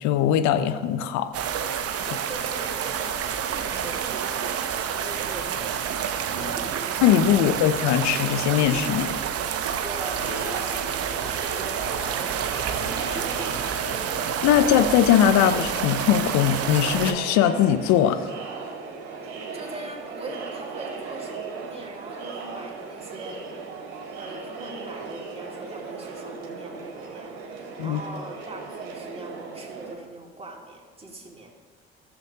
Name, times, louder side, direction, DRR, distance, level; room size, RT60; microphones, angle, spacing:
voice 1, 0.0-1.3 7.0-9.1 14.4-18.2 27.8-28.0, left 10 dB, 65° left, 10 dB, 0.7 m, -20 dB
sound 1, 1.3-17.1, right 8 dB, 50° right, 0.8 m, -29 dB
voice 2, 2.0-5.9 6.3-6.9 9.8-14.0 19.2-23.4 24.2-31.5, right 2 dB, 20° right, -1 dB, 2.4 m, -41 dB
Crowd, 10.0-29.9, right 4 dB, 70° right, 1.5 m, -37 dB
15.0 x 7.1 x 2.9 m, 1.5 s
hypercardioid pair, 50°, 30 cm